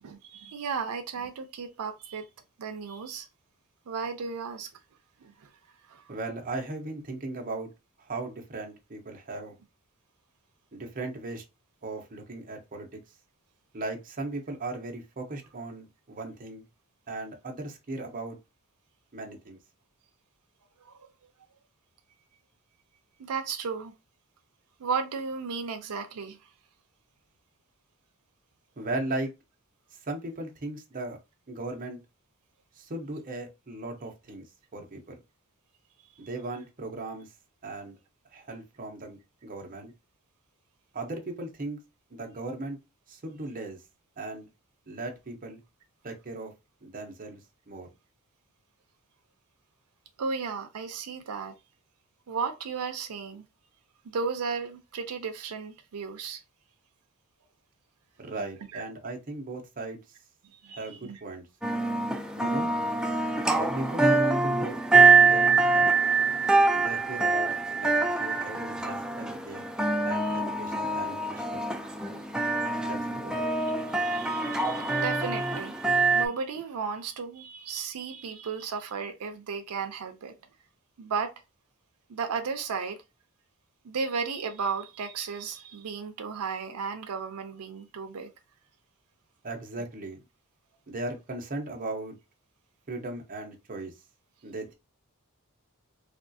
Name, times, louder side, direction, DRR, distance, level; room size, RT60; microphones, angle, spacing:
voice 1, 0.0-2.2 2.6-3.3 3.9-4.7 5.4-5.5 5.9-6.0 20.8-21.1 23.2-23.9 24.8-26.4 50.2-51.5 52.3-53.4 54.0-56.4 58.7-58.8 60.6-61.2 70.1-70.4 73.9-80.3 81.0-81.3 82.1-83.0 83.8-88.3, right 5 dB, 85° right, 0.5 m, -34 dB
voice 2, 6.1-7.7 8.0-9.5 10.7-11.4 11.8-12.9 13.7-16.6 17.1-18.4 19.1-19.6 28.8-29.3 30.0-31.2 31.5-32.0 32.7-34.4 34.7-35.2 36.2-37.3 37.6-38.0 38.3-39.9 40.9-41.8 42.1-42.8 43.1-43.8 44.2-44.5 44.9-45.6 46.0-46.5 46.8-47.4 47.7-47.9 58.2-60.0 60.7-61.5 62.4-62.7 63.5-64.8 65.2-65.9 66.7-69.6 70.0-71.6 72.8-73.5 89.4-90.2 90.9-92.2 92.9-93.9 94.4-94.7, right 2 dB, 40° right, 0.7 m, -37 dB
sound 1, 61.6-76.3, right 4 dB, 5° right, 0.3 m, -24 dB
3.5 x 2.3 x 2.6 m
head